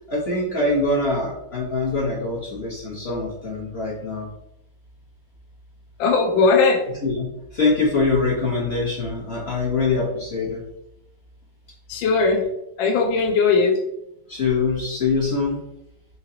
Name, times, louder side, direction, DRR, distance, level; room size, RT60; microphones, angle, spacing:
voice 1, 0.1-4.3 7.0-10.6 14.3-15.6, left 3 dB, 40° left, -6 dB, 1.0 m, -24 dB
voice 2, 6.0-6.8 11.9-12.4 12.8-13.8, left 4 dB, 75° left, 0 dB, 1.3 m, -18 dB
4.9 x 3.0 x 2.8 m, 0.83 s
omnidirectional pair, 2.2 m